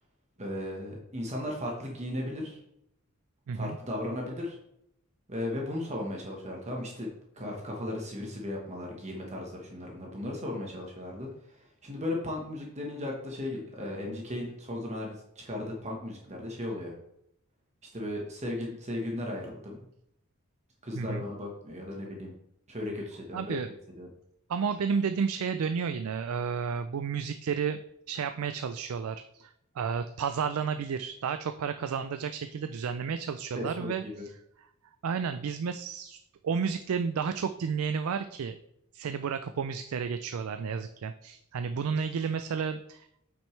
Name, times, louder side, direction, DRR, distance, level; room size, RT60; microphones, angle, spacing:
voice 1, 0.4-2.6 3.5-4.6 5.3-7.1 7.4-11.3 11.6-16.9 17.9-19.8 20.8-22.3 22.7-23.6 24.0-24.1 33.5-34.2, left 1 dB, 30° right, -1 dB, 1.2 m, -36 dB
voice 2, 23.3-23.7 24.5-27.8 28.1-34.3 35.0-36.2 36.4-38.6 38.9-43.1, right 6 dB, 70° right, 9 dB, 0.4 m, -32 dB
8.6 x 6.1 x 3.2 m, 0.80 s
head